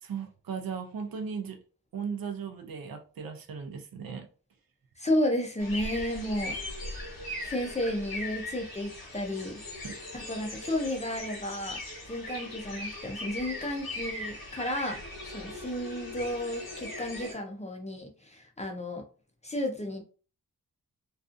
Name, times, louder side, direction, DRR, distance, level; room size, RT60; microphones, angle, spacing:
voice 1, 0.0-1.6 1.9-4.3, right 6 dB, 70° right, 0.5 m, -37 dB
voice 2, 5.0-6.5 7.4-9.6 10.1-11.8 12.1-15.0 15.3-19.0 19.4-20.0, left 1 dB, 20° left, 0.4 m, -32 dB
sound 1, 5.6-17.3, left 1 dB, 80° left, 1.1 m, -40 dB
2.5 x 2.3 x 2.4 m
wide cardioid pair, 125°, 36 cm